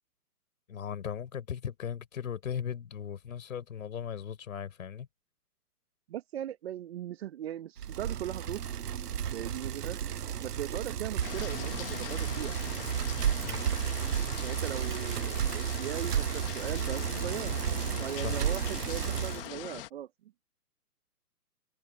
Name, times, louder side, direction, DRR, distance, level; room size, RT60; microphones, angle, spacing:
voice 1, 0.7-5.1 13.4-13.6 18.2-18.4, left 8 dB, 60° left, 5.2 m, -37 dB
voice 2, 6.1-8.6 9.3-10.0 10.4-12.6 14.4-17.6 18.0-20.1, right 11 dB, 40° right, 1.4 m, -39 dB
Bicycle, 7.8-19.5, right 9 dB, 75° right, 0.8 m, -33 dB
sound 1, 11.2-19.9, left 15 dB, 35° left, 2.0 m, -42 dB
figure-of-eight pair, 135°, 47 cm